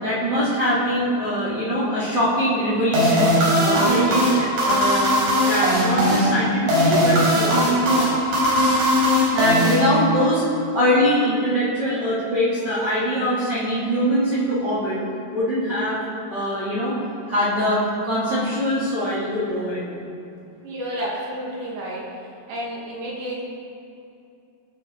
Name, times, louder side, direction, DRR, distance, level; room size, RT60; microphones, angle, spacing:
voice 1, 0.0-8.1 9.3-15.0 15.3-16.0 16.3-16.9 17.3-19.9, equal, 25° right, -11 dB, 3.6 m, -23 dB
sound 1, 2.9-10.3, equal, 90° right, 6.4 m, -19 dB
voice 2, 7.8-8.2 20.6-22.1 22.5-23.4, equal, 70° right, -4 dB, 4.0 m, -31 dB
23.0 x 10.5 x 4.2 m, 2.6 s
omnidirectional pair, 4.7 m